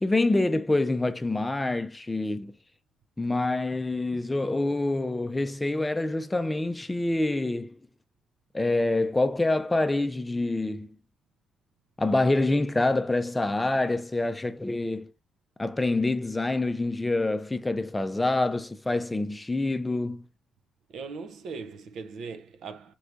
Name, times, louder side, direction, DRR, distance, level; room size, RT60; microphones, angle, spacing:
voice 1, 0.0-2.5 3.2-7.8 8.5-11.0 12.0-15.1 15.6-20.2, left 2 dB, 15° left, 0.5 m, -26 dB
voice 2, 20.9-22.9, right 4 dB, 70° right, 0.6 m, -39 dB
4.5 x 3.2 x 2.5 m
cardioid pair, 90°, 0 cm